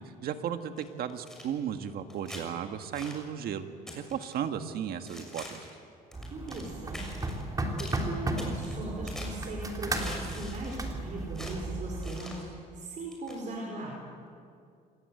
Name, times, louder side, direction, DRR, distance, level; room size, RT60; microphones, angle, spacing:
voice 1, 0.2-3.7 3.9-5.7, right 8 dB, 65° right, 7 dB, 1.7 m, -35 dB
sound 1, 0.8-1.4 2.1-2.4 2.9-3.2 3.9-4.4 5.1-5.8 6.1-6.7 6.9-7.4 7.8-8.0 8.4-9.5 10.0-10.8 11.3-11.6 12.0-12.5 13.1-13.4, left 1 dB, 5° left, 6.6 m, -44 dB
sound 2, 6.1-12.1, right 2 dB, 20° right, 3.4 m, -35 dB
voice 2, 6.3-7.2 7.5-14.0, right 2 dB, 50° right, -1 dB, 5.3 m, -39 dB
27.0 x 20.5 x 8.0 m, 2.4 s
cardioid pair, 110°, 17 cm